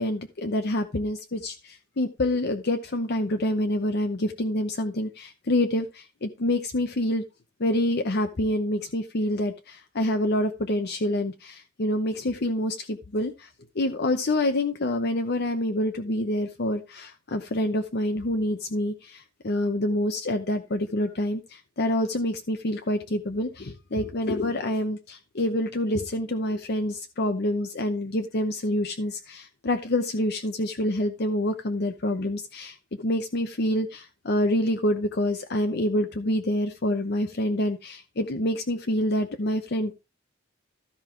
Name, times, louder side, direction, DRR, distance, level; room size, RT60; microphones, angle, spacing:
voice 1, 0.0-7.2 7.6-39.9, left 1 dB, 55° left, 7 dB, 0.9 m, -27 dB
13.0 x 5.5 x 4.5 m, 0.28 s
head